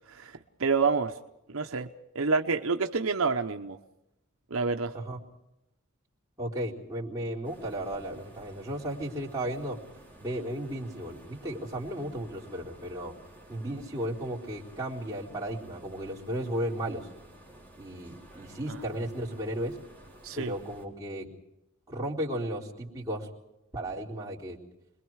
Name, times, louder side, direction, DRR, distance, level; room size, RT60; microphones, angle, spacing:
voice 1, 0.1-1.1 1.5-1.9 2.1-3.8 4.5-4.9 20.2-20.5, right 4 dB, 75° right, 0.9 m, -28 dB
voice 2, 6.4-9.8 10.2-13.1 13.5-17.1 17.8-19.8 20.4-21.3 21.9-23.3 23.7-24.6, right 1 dB, 15° right, 4.0 m, -34 dB
sound 1, 7.4-20.9, right 1 dB, 10° left, 3.5 m, -53 dB
30.0 x 22.0 x 4.8 m
head